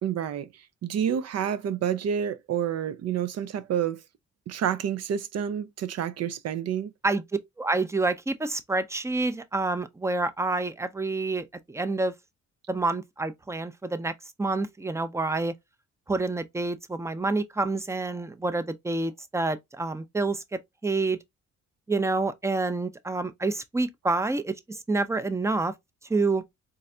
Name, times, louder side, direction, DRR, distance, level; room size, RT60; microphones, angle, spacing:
voice 1, 0.0-4.0 4.5-6.9, right 9 dB, 55° right, 0.5 m, -29 dB
voice 2, 7.6-12.1 12.7-14.1 14.4-15.5 16.1-21.2 21.9-25.7 26.1-26.4, right 3 dB, 10° right, 0.5 m, -28 dB
4.0 x 2.5 x 3.2 m
cardioid pair, 90°, 30 cm